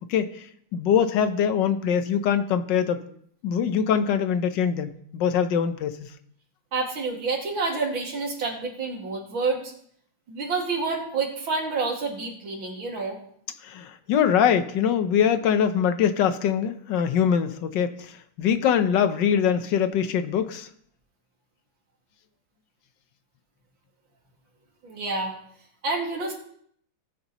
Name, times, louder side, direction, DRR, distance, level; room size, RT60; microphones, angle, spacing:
voice 1, 0.1-0.5 0.7-3.0 3.4-6.1 13.6-20.7, left 8 dB, 65° left, 10 dB, 1.4 m, -23 dB
voice 2, 6.7-9.7 10.3-13.2 24.8-25.3 25.8-26.3, right 4 dB, 70° right, 0 dB, 3.0 m, -28 dB
18.5 x 9.4 x 3.0 m, 0.65 s
omnidirectional pair, 2.3 m